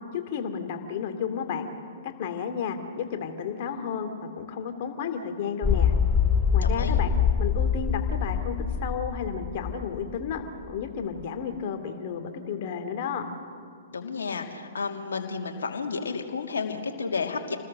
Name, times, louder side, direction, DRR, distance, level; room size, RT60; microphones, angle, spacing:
voice 1, 0.1-1.7 2.0-6.0 6.5-7.1 7.4-13.2, left 7 dB, 45° left, 6 dB, 2.6 m, -32 dB
sound 1, 5.6-10.4 10.6-10.7, left 7 dB, 15° left, 1.0 m, -25 dB
voice 2, 6.6-7.0 13.9-17.6, left 5 dB, 70° left, 3 dB, 2.8 m, -32 dB
29.0 x 20.0 x 6.5 m, 2.3 s
figure-of-eight pair, 115°, 0 cm